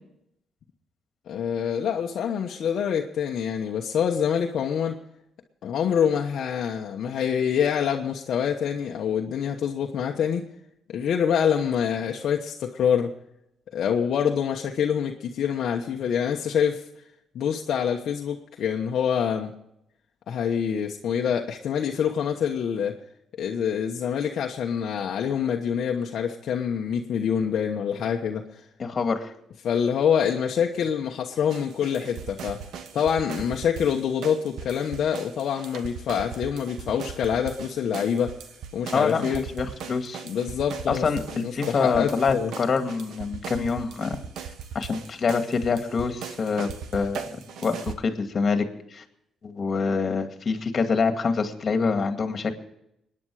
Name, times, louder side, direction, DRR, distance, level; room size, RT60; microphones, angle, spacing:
voice 1, 1.3-5.0 5.6-10.4 10.9-13.1 13.7-16.8 17.3-19.5 20.3-22.9 23.4-28.4 29.6-32.6 32.9-38.3 38.7-39.4 40.3-41.0 41.4-42.5, left 8 dB, 65° left, 1 dB, 1.1 m, -26 dB
voice 2, 28.8-29.3 38.9-40.2 40.9-44.2 44.7-47.2 47.6-49.0 49.4-52.5, left 5 dB, 45° left, 6 dB, 2.1 m, -26 dB
sound 1, 31.5-47.9, right 7 dB, 75° right, 1.3 m, -39 dB
23.0 x 9.9 x 4.9 m, 0.79 s
cardioid pair, 90°, 0 cm